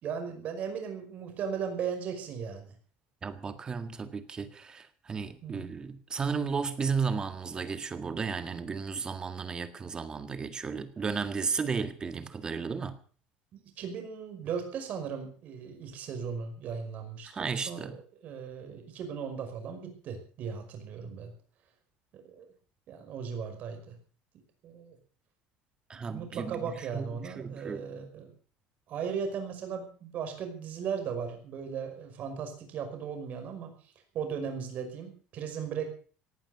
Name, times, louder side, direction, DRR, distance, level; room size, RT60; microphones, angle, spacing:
voice 1, 0.0-2.7 5.4-5.7 13.5-21.3 22.1-22.5 22.9-23.9 24.6-25.0 25.9-28.3 28.9-33.7 34.1-35.9, right 6 dB, 45° right, 5.4 m, -37 dB
voice 2, 3.2-13.0 17.2-18.0 25.9-27.9, right 5 dB, 20° right, 1.8 m, -34 dB
18.0 x 11.5 x 6.9 m
cardioid pair, 150°, 4 cm